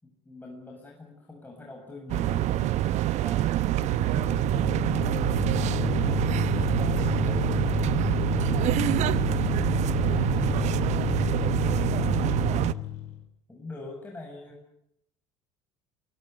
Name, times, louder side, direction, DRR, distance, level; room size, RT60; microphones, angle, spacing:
voice 1, 0.0-5.0 5.7-9.2 9.9-12.8 13.5-14.8, left 2 dB, 10° left, 0 dB, 7.6 m, -44 dB
sound 1, 2.1-12.7, right 14 dB, 50° right, 0.9 m, -26 dB
sound 2, 3.4-13.2, left 13 dB, 55° left, 4.7 m, -31 dB
23.5 x 23.5 x 8.2 m, 0.76 s
figure-of-eight pair, 65°, 15 cm